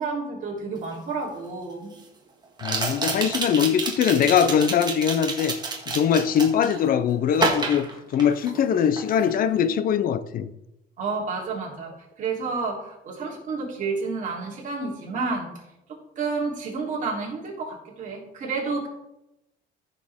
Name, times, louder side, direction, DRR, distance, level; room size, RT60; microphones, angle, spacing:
voice 1, 0.0-1.9 11.0-15.5 16.1-18.9, right 4 dB, 40° right, 3.4 m, -30 dB
sound 1, 0.9-1.0 2.6-6.8 7.3-8.7 9.0-9.3, right 4 dB, 20° right, 1.7 m, -29 dB
voice 2, 2.6-5.5 5.9-7.9 8.1-10.5, left 8 dB, 45° left, 0.6 m, -22 dB
14.5 x 6.6 x 3.6 m
cardioid pair, 140°, 20 cm